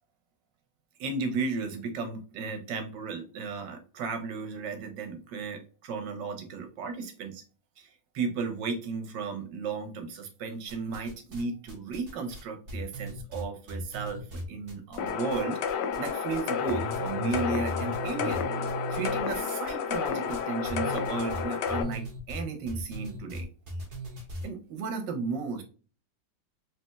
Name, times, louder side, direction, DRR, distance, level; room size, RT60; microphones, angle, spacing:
voice 1, 1.0-7.4 7.8-18.4 18.9-23.5 24.4-25.6, right 4 dB, 80° right, 6 dB, 1.5 m, -34 dB
sound 1, 10.7-11.4 11.7-15.4 15.7-16.4 16.7-24.5, right 1 dB, 40° right, 1.7 m, -38 dB
sound 2, 15.0-21.8, left 7 dB, 75° left, 1.2 m, -31 dB
4.2 x 3.1 x 2.2 m, 0.36 s
omnidirectional pair, 1.9 m